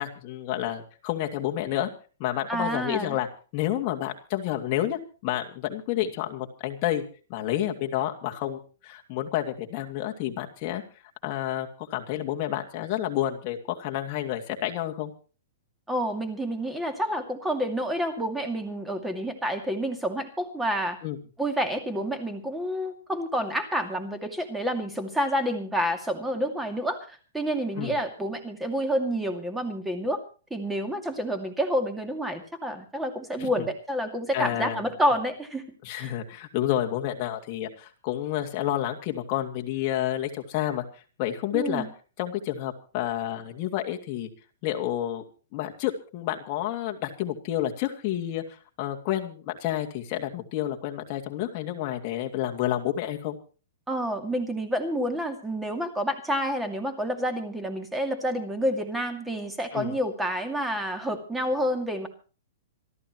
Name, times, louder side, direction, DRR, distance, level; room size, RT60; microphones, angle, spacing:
voice 1, 0.0-1.9 2.2-3.3 3.5-7.0 7.3-10.8 11.2-15.1 21.0-21.2 27.8-27.9 33.4-33.5 34.3-34.9 35.8-40.8 41.2-41.9 42.2-44.3 44.6-45.2 45.5-48.4 48.8-53.4 59.7-59.9, left 12 dB, 30° left, 2 dB, 2.4 m, -29 dB
voice 2, 2.5-3.2 15.9-21.0 21.4-30.2 30.5-35.6 36.0-36.1 41.5-41.9 53.9-62.1, equal, 5° right, 6 dB, 2.3 m, -29 dB
27.0 x 12.5 x 3.1 m, 0.38 s
hypercardioid pair, 165°, 0 cm